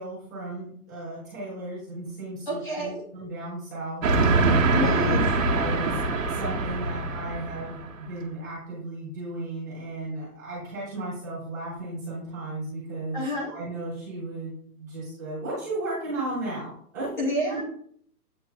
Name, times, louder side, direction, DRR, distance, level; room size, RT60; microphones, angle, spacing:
voice 1, 0.0-4.7 5.4-6.0 6.3-13.2 13.5-17.1 17.5-17.6, right 2 dB, 10° right, -10 dB, 1.1 m, -35 dB
voice 2, 2.5-3.0 4.7-5.4 13.1-13.5 17.2-17.6, left 1 dB, 30° left, -4 dB, 0.8 m, -28 dB
Train, 4.0-7.9, right 3 dB, 55° right, 1.0 m, -24 dB
8.3 x 2.9 x 2.2 m, 0.62 s
hypercardioid pair, 180°, 46 cm